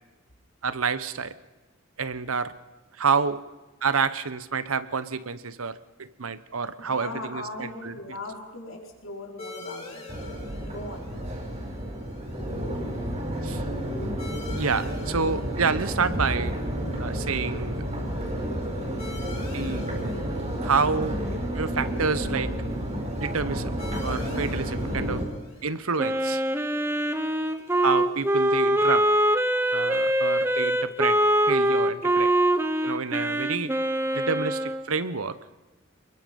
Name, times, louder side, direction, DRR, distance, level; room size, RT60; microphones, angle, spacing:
voice 1, 0.6-1.3 2.0-2.5 3.0-3.4 3.8-7.9 13.4-13.6 14.6-16.6 17.0-17.8 19.5-19.9 20.6-21.2 21.5-22.5 23.1-23.7 24.0-25.2 25.6-26.4 27.8-29.1 29.7-31.2 31.5-32.3 32.8-33.7 34.1-35.4, right 5 dB, 90° right, 14 dB, 1.1 m, -28 dB
voice 2, 6.8-10.1 10.6-11.1, left 2 dB, 75° left, 0 dB, 4.6 m, -39 dB
sound 1, 9.4-28.5, left 3 dB, 30° left, 7.1 m, -47 dB
Crowd, 10.1-25.2, equal, 30° right, 5.3 m, -31 dB
Wind instrument woodwind instrument, 26.0-34.9, right 1 dB, 10° right, 1.1 m, -23 dB
28.0 x 22.0 x 5.4 m, 1.2 s
head